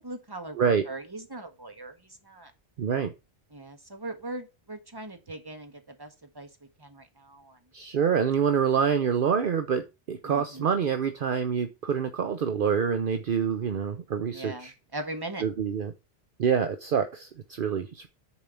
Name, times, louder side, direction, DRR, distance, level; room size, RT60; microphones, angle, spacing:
voice 1, 0.0-2.5 3.5-6.5 6.8-7.6 10.2-10.7 14.3-15.4, right 2 dB, 20° right, 6 dB, 1.5 m, -40 dB
voice 2, 2.8-3.1 7.7-14.7 15.4-15.9 16.4-18.1, right 7 dB, 60° right, 8 dB, 0.9 m, -26 dB
6.9 x 4.7 x 6.9 m, 0.26 s
omnidirectional pair, 1.1 m